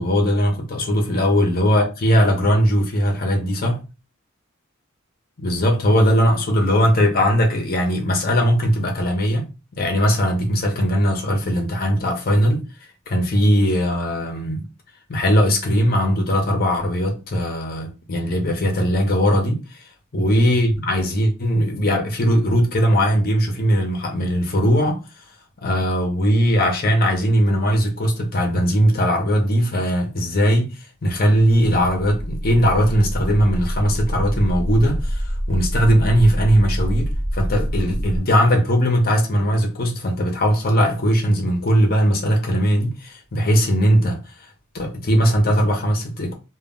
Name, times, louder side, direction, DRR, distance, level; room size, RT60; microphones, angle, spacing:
voice 1, 0.0-3.8 5.4-9.5 9.7-12.7 13.1-14.6 15.1-19.8 20.1-25.2 25.6-46.4, equal, 45° left, 0.6 m, -19 dB
sound 1, 31.5-38.2, equal, 30° right, 0.6 m, -26 dB
2.2 x 2.0 x 3.5 m
head